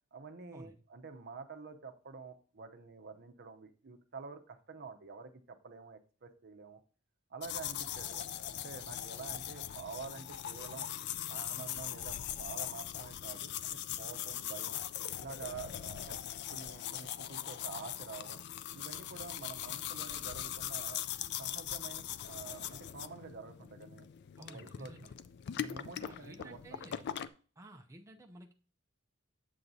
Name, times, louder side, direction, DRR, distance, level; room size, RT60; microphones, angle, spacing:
voice 1, 0.1-6.8 7.3-10.9 11.3-14.8 15.2-16.2 16.5-18.4 18.7-21.0 21.4-24.1 24.5-24.9 25.6-26.8, right 5 dB, 50° right, 7 dB, 0.7 m, -48 dB
sound 1, 7.4-27.3, left 10 dB, 55° left, 0.3 m, -41 dB
voice 2, 24.4-25.1 26.0-27.1 27.6-28.5, right 1 dB, 15° right, 2 dB, 0.5 m, -53 dB
7.7 x 7.5 x 2.7 m, 0.41 s
head